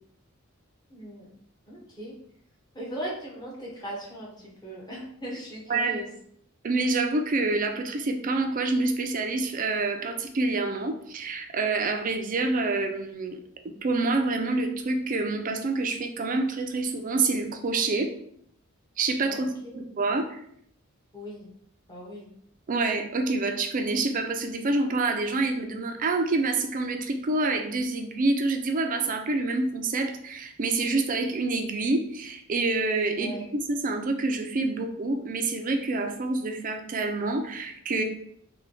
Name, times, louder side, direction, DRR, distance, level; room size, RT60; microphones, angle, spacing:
voice 1, 0.9-1.3 1.7-2.1 2.7-6.1 19.3-19.8 21.1-21.5 21.9-22.3 33.1-33.4, right 1 dB, 20° left, -4 dB, 0.9 m, -38 dB
voice 2, 5.7-6.0 6.6-13.4 13.6-18.1 19.0-19.5 19.7-20.4 22.7-38.0, right 3 dB, 40° right, 5 dB, 0.4 m, -27 dB
3.3 x 2.2 x 3.7 m, 0.69 s
head